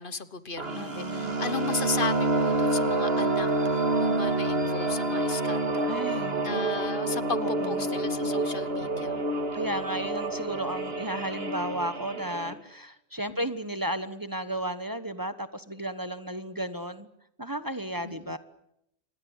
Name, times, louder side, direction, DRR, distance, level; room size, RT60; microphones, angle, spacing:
voice 1, 0.0-5.9 6.4-9.2 13.3-13.5 18.0-18.2, left 4 dB, 55° left, 14 dB, 1.4 m, -35 dB
sound 1, 0.6-12.5, right 2 dB, 70° right, 2.6 m, -28 dB
voice 2, 0.7-1.4 5.9-6.4 7.4-7.9 9.5-17.1 17.4-18.4, right 1 dB, 20° right, 11 dB, 1.2 m, -34 dB
27.5 x 21.5 x 8.1 m, 0.80 s
omnidirectional pair, 1.1 m